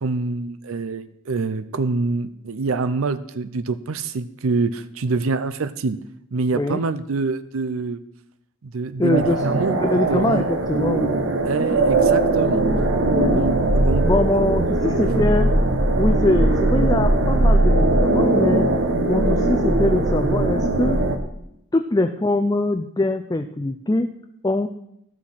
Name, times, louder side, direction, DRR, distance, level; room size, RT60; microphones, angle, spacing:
voice 1, 0.0-6.0 6.3-8.0 8.6-9.8 10.1-10.5 11.5-12.6 13.3-14.1, right 3 dB, 90° right, 14 dB, 0.6 m, -25 dB
voice 2, 9.0-9.4 9.7-11.2 11.7-11.8 13.1-13.4 14.0-15.5 16.0-18.7 19.1-21.0 21.7-24.1 24.4-24.7, left 2 dB, 20° left, 6 dB, 0.4 m, -22 dB
sound 1, 9.1-21.2, right 2 dB, 65° right, 1.1 m, -19 dB
14.5 x 6.2 x 5.8 m, 0.78 s
head